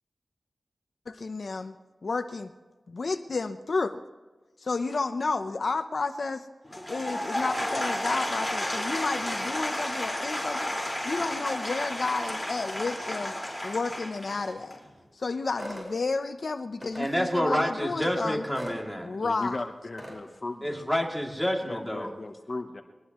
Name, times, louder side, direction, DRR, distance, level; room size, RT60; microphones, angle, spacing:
voice 1, 1.1-1.8 2.0-2.5 2.9-4.0 4.6-6.5 6.9-10.7 11.0-13.3 13.6-14.8 15.2-18.4 19.0-19.6, left 3 dB, 65° left, 8 dB, 0.8 m, -31 dB
Applause / Crowd, 6.6-14.9, left 1 dB, 15° left, 4.5 m, -32 dB
sound 1, 15.6-15.9 16.8-17.1 18.5-18.8 20.0-20.2, equal, 20° right, 5.3 m, -38 dB
voice 2, 17.0-19.2 20.6-22.1, equal, 5° right, 0 dB, 2.8 m, -28 dB
voice 3, 19.2-20.8 21.7-22.8, left 2 dB, 45° left, 5 dB, 1.0 m, -37 dB
23.5 x 19.5 x 3.1 m, 1.3 s
wide cardioid pair, 105°, 0 cm